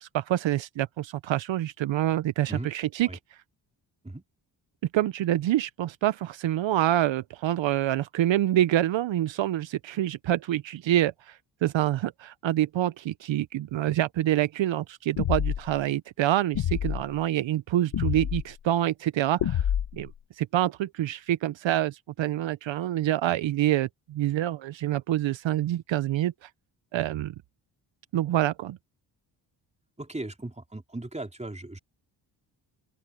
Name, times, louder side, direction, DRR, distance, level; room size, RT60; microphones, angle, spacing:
voice 1, 0.0-3.1 4.9-19.6 19.9-20.1 20.4-26.5 26.9-27.3 28.1-28.8, right 13 dB, 70° right, 0.8 m, -26 dB
sound 1, 15.2-15.8 16.5-17.0 17.9-18.4 19.4-20.1, left 10 dB, 65° left, 1.5 m, -27 dB
voice 2, 30.0-31.8, right 2 dB, 15° right, 4.1 m, -37 dB
open air
cardioid pair, 60°, 47 cm